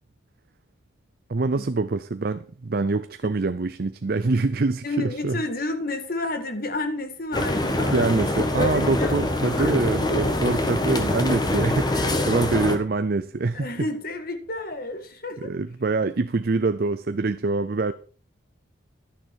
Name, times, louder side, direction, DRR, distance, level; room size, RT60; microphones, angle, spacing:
voice 1, 1.3-5.4 7.9-13.7 15.4-17.9, right 3 dB, 50° right, 0.5 m, -25 dB
voice 2, 4.8-9.8 10.1-10.4 11.9-12.5 13.5-15.5, left 2 dB, 45° left, 1.7 m, -31 dB
sound 1, 7.3-12.8, left 1 dB, 20° left, 1.5 m, -24 dB
11.5 x 10.5 x 4.5 m
head